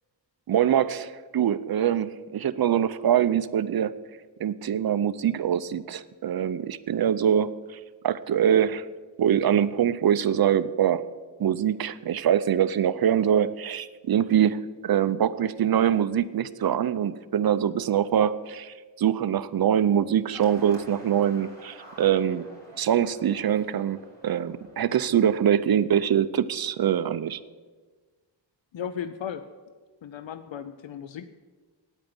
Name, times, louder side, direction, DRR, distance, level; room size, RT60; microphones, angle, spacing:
voice 1, 0.5-3.9 4.4-8.8 9.2-11.0 11.4-22.4 22.8-27.4, right 9 dB, 50° right, 13 dB, 0.6 m, -24 dB
sound 1, 20.3-25.3, right 1 dB, 20° left, 4.6 m, -50 dB
voice 2, 28.7-29.4 30.0-31.3, left 8 dB, 75° left, 11 dB, 0.7 m, -35 dB
9.2 x 8.8 x 9.5 m, 1.4 s
wide cardioid pair, 135°, 46 cm